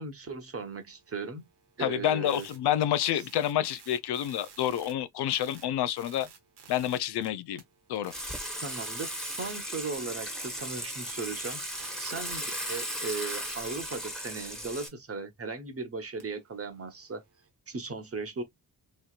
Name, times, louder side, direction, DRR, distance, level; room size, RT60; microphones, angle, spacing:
voice 1, 0.0-1.5 1.8-2.4 3.1-3.2 8.6-11.6 12.0-17.2 17.7-18.4, right 4 dB, 35° right, 1.1 m, -37 dB
sound 1, 0.5-4.9 5.3-7.3 7.6-9.6 9.9-11.1 11.8-11.9 16.2-17.5, right 7 dB, 85° right, 1.1 m, -55 dB
voice 2, 1.8-6.3 6.7-7.6 7.9-8.1, left 11 dB, 75° left, 0.5 m, -28 dB
Water / Water tap faucet / Sink (filling or washing), 8.1-14.9, equal, ahead, 1.2 m, -36 dB
3.1 x 2.8 x 2.3 m
cardioid pair, 60°, 40 cm